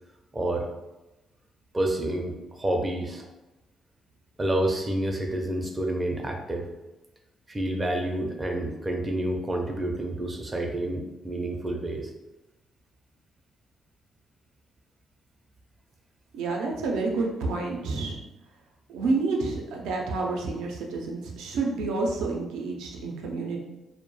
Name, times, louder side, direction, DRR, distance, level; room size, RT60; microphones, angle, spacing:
voice 1, 0.3-0.7 1.7-3.3 4.4-6.7 7.5-12.1, right 1 dB, 25° right, 3 dB, 0.4 m, -29 dB
voice 2, 16.3-18.2 18.9-23.6, right 3 dB, 90° right, 0 dB, 0.4 m, -29 dB
2.2 x 2.1 x 3.0 m, 1.0 s
cardioid pair, 90°, 0 cm